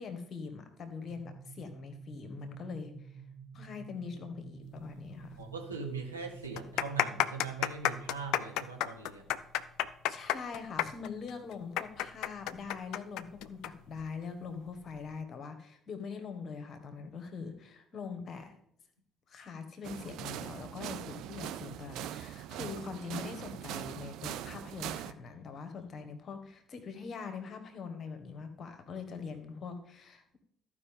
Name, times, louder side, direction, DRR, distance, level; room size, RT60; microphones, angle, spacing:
voice 1, 0.0-3.2 3.5-5.4 10.1-18.5 19.3-30.4, left 5 dB, 40° left, 7 dB, 1.3 m, -43 dB
sound 1, 1.1-8.7, right 6 dB, 15° right, 2.8 m, -50 dB
sound 2, 5.4-5.5 5.7-5.8 6.4-13.7 14.0-14.1 14.8-15.1, left 12 dB, 60° left, 0.3 m, -31 dB
voice 2, 5.4-9.4, right 4 dB, 85° right, 1 dB, 1.1 m, -41 dB
sound 3, 19.8-25.1, right 12 dB, 60° right, 0.4 m, -41 dB
14.0 x 5.0 x 3.7 m, 0.69 s
figure-of-eight pair, 50°, 0 cm